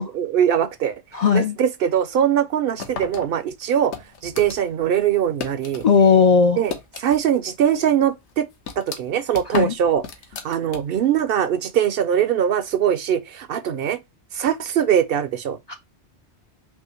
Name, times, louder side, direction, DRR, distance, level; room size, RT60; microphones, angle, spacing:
voice 1, 0.0-1.0 1.3-3.9 4.2-5.9 6.6-6.7 7.0-8.5 8.8-10.0 10.4-14.0 14.3-15.6, right 9 dB, 60° right, 0.7 m, -21 dB
voice 2, 1.1-1.6 5.8-6.6 9.5-9.7 15.7-15.8, left 5 dB, 60° left, 0.4 m, -16 dB
sound 1, 2.8-5.9 6.2-7.4 7.7-7.8 8.3-11.1, left 5 dB, 80° left, 1.2 m, -35 dB
5.4 x 2.7 x 3.0 m
omnidirectional pair, 1.2 m